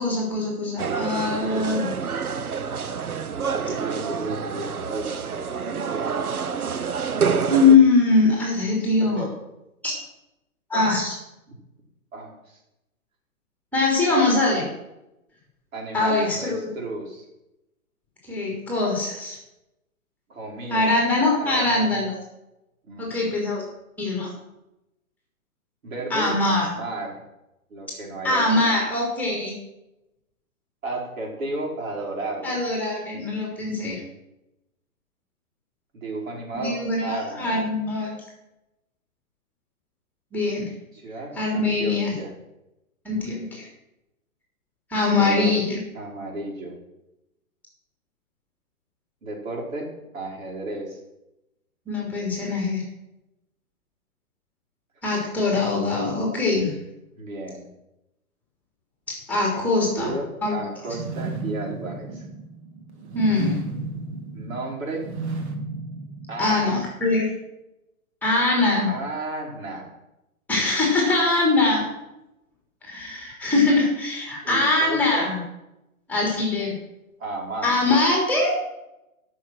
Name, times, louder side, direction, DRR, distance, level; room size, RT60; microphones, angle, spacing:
voice 1, 0.0-1.9 7.5-9.2 9.8-9.9 10.7-11.1 13.7-14.7 15.9-16.7 18.3-19.4 20.7-22.1 23.0-23.6 24.0-24.3 26.1-26.7 28.2-29.5 32.4-34.0 36.6-38.2 40.3-40.7 41.3-42.1 43.0-43.7 44.9-45.8 51.9-52.8 55.0-56.7 59.3-60.1 60.4-60.6 63.1-63.6 66.4-67.2 68.2-68.9 70.5-71.8 72.8-75.4 76.1-76.8 77.6-78.5, left 3 dB, 5° left, -2 dB, 3.2 m, -22 dB
sound 1, 0.8-7.8, right 6 dB, 80° right, 1.0 m, -27 dB
voice 2, 3.5-5.1 9.0-9.3 10.7-11.0 11.5-11.6 12.1-12.6 15.7-17.2 20.3-20.9 21.4-22.0 22.8-23.1 25.8-27.2 27.7-28.8 30.8-32.6 35.9-37.6 40.9-42.3 45.2-45.5 45.9-46.8 49.2-51.0 57.2-57.6 59.5-62.3 64.3-65.1 66.3-66.8 68.9-69.9 74.4-75.3 77.2-78.0, right 2 dB, 65° right, -2 dB, 4.9 m, -33 dB
sound 2, 60.8-66.9, right 3 dB, 50° right, 1.9 m, -33 dB
13.0 x 6.4 x 6.1 m, 0.91 s
hypercardioid pair, 130°, 43 cm